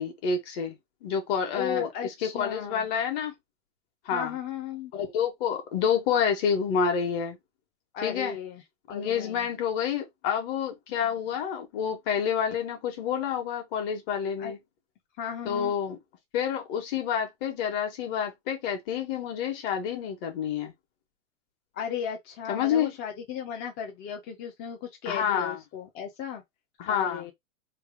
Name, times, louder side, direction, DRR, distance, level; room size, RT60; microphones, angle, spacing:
voice 1, 0.0-1.9 2.2-3.3 4.0-4.3 4.9-7.4 8.0-8.4 8.9-14.6 15.4-16.0 16.3-20.7 22.5-22.9 25.0-25.6 26.8-27.2, left 7 dB, 45° left, 1.4 m, -28 dB
voice 2, 1.5-2.9 4.1-4.9 7.9-8.6 8.9-9.5 10.9-11.1 14.4-14.5 15.2-15.7 21.7-26.4 26.9-27.3, left 8 dB, 25° left, 0.5 m, -35 dB
3.3 x 2.4 x 3.5 m
supercardioid pair, 140°, 40 cm